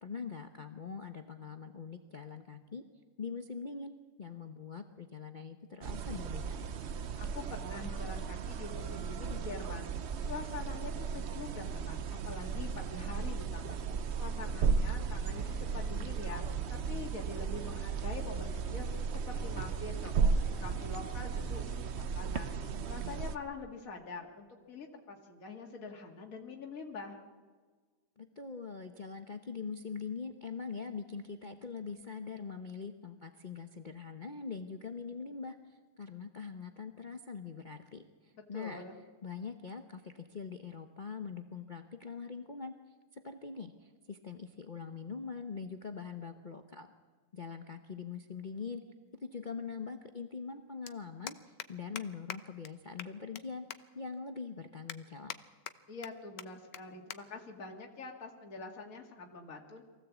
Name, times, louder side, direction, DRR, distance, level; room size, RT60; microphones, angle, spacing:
voice 1, 0.0-2.8 3.2-3.9 4.2-6.6 28.2-38.8 39.2-42.7 43.1-46.9 47.3-48.8 49.1-53.7 53.9-55.3, left 5 dB, 35° left, 6 dB, 0.9 m, -43 dB
sound 1, 5.8-23.4, right 5 dB, 50° right, 0.9 m, -35 dB
voice 2, 7.2-9.9 10.2-13.8 14.2-22.5 22.9-27.2 38.3-39.0 55.9-59.8, left 3 dB, 55° left, 2 dB, 2.4 m, -45 dB
sound 2, 15.3-23.3, equal, ahead, 2.7 m, -52 dB
sound 3, 48.6-48.7 50.1-50.2 50.4-50.6 50.9-51.0 51.3-51.7 52.0-52.1 52.3-52.4 52.6-52.7 53.0-53.4 53.7-53.8 54.3-54.4 54.9-55.4 55.7-56.1 56.4-56.5 56.7-56.8 57.1-57.2 57.5-57.7 58.5-58.8, left 10 dB, 85° left, 1.5 m, -42 dB
23.5 x 16.0 x 8.2 m, 1.5 s
omnidirectional pair, 1.8 m